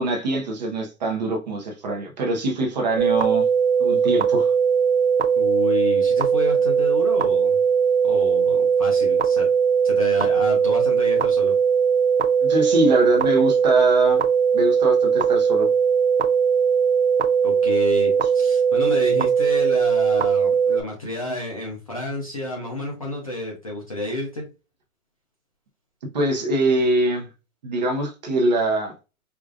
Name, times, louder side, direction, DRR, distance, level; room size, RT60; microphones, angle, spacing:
voice 1, 0.0-3.5 3.8-4.5 12.4-14.2 14.5-15.7 26.1-27.3 27.6-28.9, right 2 dB, 30° right, 0.8 m, -23 dB
sound 1, 3.0-20.8, right 6 dB, 55° right, 0.5 m, -19 dB
voice 2, 5.4-7.6 8.0-9.5 9.8-11.6 17.4-24.5, left 1 dB, 25° left, 0.5 m, -30 dB
5.0 x 2.4 x 2.4 m
hypercardioid pair, 165°, 43 cm